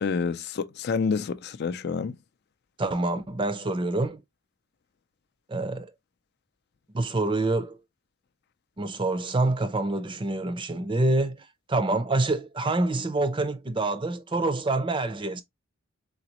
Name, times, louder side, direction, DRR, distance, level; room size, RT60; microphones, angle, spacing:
voice 1, 0.0-2.2, left 5 dB, 50° left, 0.4 m, -28 dB
voice 2, 2.8-4.2 5.5-5.9 6.9-7.8 8.8-15.4, right 2 dB, 25° right, 0.5 m, -26 dB
4.0 x 3.9 x 2.9 m
head